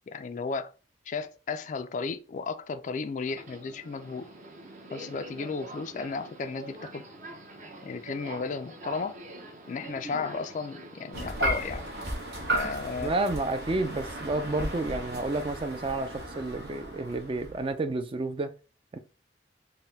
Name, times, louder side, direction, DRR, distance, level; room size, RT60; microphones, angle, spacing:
voice 1, 0.1-0.7 1.1-4.3 4.9-7.0 7.8-9.2 9.7-11.9 12.5-13.1, left 4 dB, 45° left, 0.3 m, -34 dB
Subway metro underground, 3.2-12.1, right 2 dB, 45° right, 0.8 m, -45 dB
sound 1, 11.1-17.7, right 1 dB, 65° right, 1.1 m, -34 dB
voice 2, 13.0-18.5 18.9-19.0, right 2 dB, 30° right, 0.4 m, -30 dB
4.1 x 2.1 x 3.9 m
head